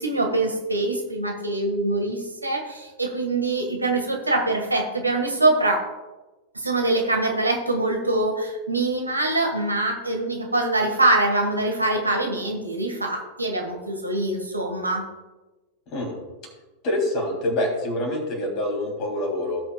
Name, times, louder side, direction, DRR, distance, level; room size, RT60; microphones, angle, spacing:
voice 1, 0.0-5.8 6.5-15.0, right 2 dB, 85° right, 2 dB, 1.6 m, -24 dB
voice 2, 16.8-19.6, left 1 dB, 40° left, 1 dB, 3.1 m, -26 dB
17.0 x 6.0 x 2.3 m, 1.1 s
figure-of-eight pair, 90°, 0 cm